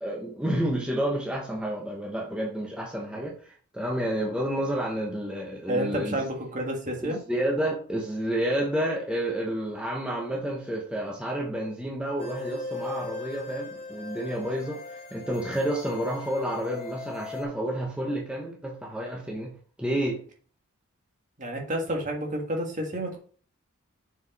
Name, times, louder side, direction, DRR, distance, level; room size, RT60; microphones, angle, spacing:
voice 1, 0.0-6.2 7.0-20.2, right 1 dB, 5° right, -2 dB, 1.1 m, -30 dB
voice 2, 5.7-7.2 21.4-23.2, right 1 dB, 35° right, 1 dB, 1.8 m, -30 dB
sound 1, 12.2-17.4, left 3 dB, 25° left, 1.4 m, -39 dB
6.9 x 4.8 x 4.2 m, 0.43 s
head